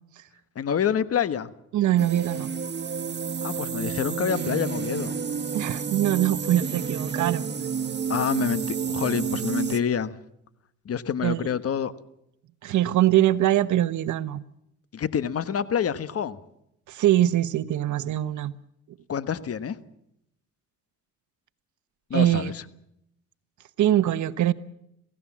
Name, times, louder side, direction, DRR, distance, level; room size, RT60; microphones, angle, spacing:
voice 1, 0.5-1.5 3.4-5.1 8.1-10.1 10.8-11.9 14.9-16.4 19.1-19.8 22.1-22.6, left 8 dB, 50° left, 1.4 m, -27 dB
voice 2, 1.7-2.5 5.5-7.4 11.2-11.5 12.6-14.4 16.9-18.5 22.1-22.5 23.8-24.5, right 13 dB, 75° right, 1.1 m, -23 dB
sound 1, 2.0-9.8, right 6 dB, 35° right, 1.3 m, -30 dB
27.0 x 16.5 x 7.4 m
cardioid pair, 90°, 30 cm